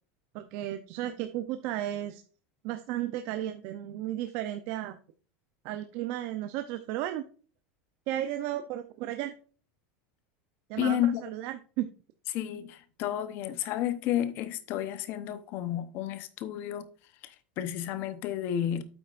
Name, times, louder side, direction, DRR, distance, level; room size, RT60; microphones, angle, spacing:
voice 1, 0.3-2.2 2.6-5.0 5.6-7.2 8.1-9.3 10.7-11.9, right 13 dB, 45° right, 0.6 m, -34 dB
voice 2, 10.8-11.2 12.3-16.9 17.2-18.8, left 11 dB, 40° left, 0.9 m, -31 dB
8.8 x 8.3 x 2.5 m
supercardioid pair, 175°, 6 cm